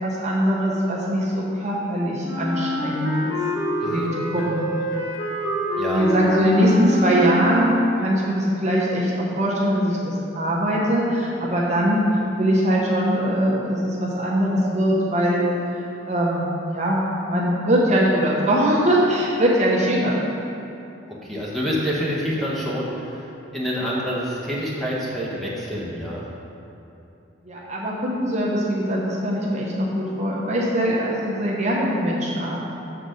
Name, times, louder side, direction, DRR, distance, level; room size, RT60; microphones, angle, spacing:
voice 1, 0.0-3.3 3.8-4.5 5.9-12.1 12.4-15.4 16.1-16.5 16.7-20.2 27.4-32.6, equal, 35° right, -4 dB, 0.8 m, -21 dB
Wind instrument woodwind instrument, 2.2-8.0, equal, 55° left, 1.0 m, -26 dB
voice 2, 3.8-4.1 4.4-4.5 5.8-6.1 21.2-23.2 23.5-26.2, equal, ahead, -7 dB, 1.0 m, -27 dB
6.7 x 4.0 x 6.3 m, 2.8 s
head